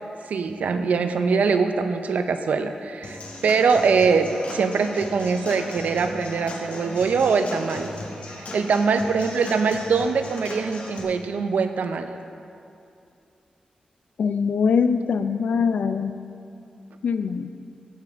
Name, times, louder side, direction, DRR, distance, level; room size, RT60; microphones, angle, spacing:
voice 1, 0.3-7.9 8.5-12.1, right 5 dB, 80° right, 8 dB, 0.6 m, -23 dB
Human voice / Acoustic guitar / Drum, 3.0-11.0, left 2 dB, 60° left, 1.4 m, -37 dB
voice 2, 14.2-16.1 17.0-17.5, left 6 dB, 85° left, 10 dB, 0.4 m, -22 dB
15.5 x 7.1 x 3.5 m, 2.6 s
wide cardioid pair, 175°, 3 cm